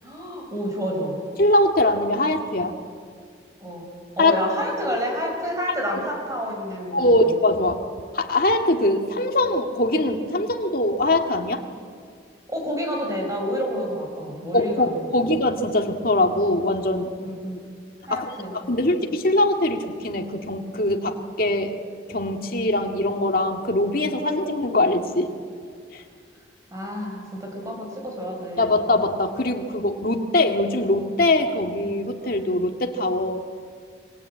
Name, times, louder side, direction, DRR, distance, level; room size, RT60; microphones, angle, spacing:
voice 1, 0.0-1.2 3.6-3.8 4.2-7.0 12.5-15.3 17.2-17.6 18.0-18.5 18.8-18.9 26.7-28.8, equal, 15° right, 0 dB, 5.3 m, -29 dB
voice 2, 1.4-2.8 4.2-4.4 6.9-7.8 8.1-11.6 14.5-17.1 18.1-21.7 22.1-25.3 25.9-26.0 28.6-33.5, left 1 dB, 50° left, 3 dB, 2.1 m, -22 dB
28.5 x 22.0 x 8.7 m, 2.1 s
head